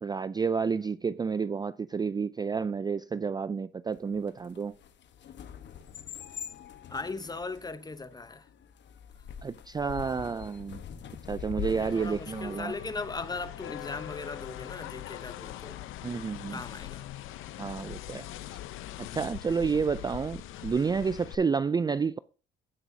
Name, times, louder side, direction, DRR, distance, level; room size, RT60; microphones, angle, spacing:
voice 1, 0.0-4.7 9.4-10.8 11.3-12.7 16.0-16.6 17.6-18.3 19.1-22.2, right 5 dB, 20° right, 0.3 m, -30 dB
sound 1, 3.9-12.5, left 8 dB, 65° left, 1.1 m, -44 dB
voice 2, 6.9-8.5 11.5-15.8 16.5-17.0, left 3 dB, 20° left, 0.9 m, -38 dB
sound 2, 11.6-21.3, left 13 dB, 90° left, 0.7 m, -42 dB
16.0 x 6.1 x 2.7 m
cardioid pair, 90°, 20 cm